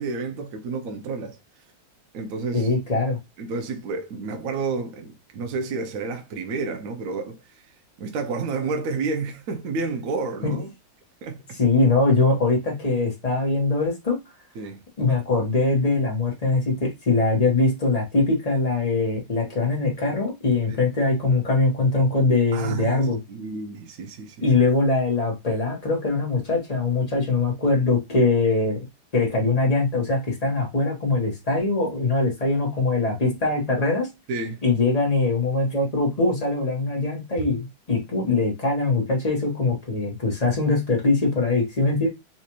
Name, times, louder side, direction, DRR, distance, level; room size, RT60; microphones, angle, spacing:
voice 1, 0.0-1.4 2.1-2.8 3.4-7.4 8.0-10.7 11.2-11.6 14.5-14.8 20.7-20.8 22.5-23.0 23.3-24.5 34.3-34.6 37.4-37.5, right 4 dB, 65° right, 0.8 m, -30 dB
voice 2, 2.5-3.2 10.4-10.6 11.6-14.2 15.0-23.2 24.4-28.8 29.1-34.1 34.6-42.1, left 3 dB, 25° left, 0.9 m, -22 dB
4.2 x 2.5 x 2.9 m
omnidirectional pair, 2.3 m